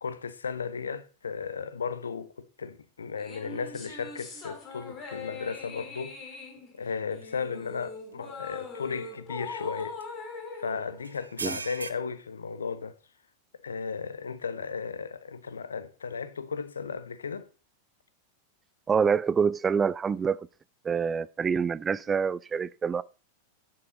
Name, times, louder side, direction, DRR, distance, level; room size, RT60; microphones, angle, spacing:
voice 1, 0.0-6.2 6.7-10.3 10.5-13.0 13.6-17.5, left 5 dB, 70° left, 1.2 m, -35 dB
sound 1, 3.2-11.8, left 4 dB, 30° left, 5.7 m, -42 dB
sound 2, 7.2-7.3 7.8-7.9 9.8-10.0 11.0-11.9, right 4 dB, 75° right, 1.0 m, -37 dB
voice 2, 18.9-20.5 20.8-23.0, right 6 dB, 20° right, 0.5 m, -26 dB
12.0 x 10.5 x 4.1 m
figure-of-eight pair, 90°, 0 cm